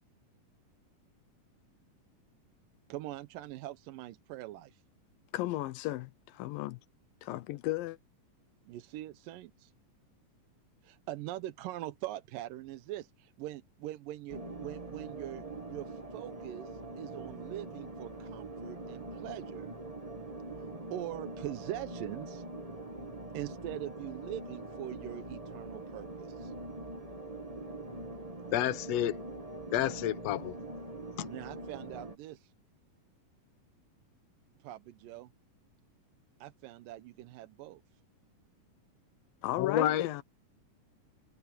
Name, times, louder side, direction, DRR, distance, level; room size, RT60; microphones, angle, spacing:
voice 1, 2.9-4.8 8.7-9.7 10.8-19.7 20.6-20.7 20.9-22.4 23.3-26.5 31.2-32.5 34.6-35.3 36.4-37.8, right 14 dB, 80° right, 2.4 m, -42 dB
voice 2, 5.3-6.8 7.2-8.0 39.4-40.2, left 16 dB, 85° left, 2.5 m, -35 dB
sound 1, 14.3-32.2, right 2 dB, 40° right, 0.5 m, -43 dB
voice 3, 28.5-29.2 29.7-30.6 31.2-31.3 39.6-40.1, left 12 dB, 60° left, 2.1 m, -29 dB
omnidirectional pair, 4.0 m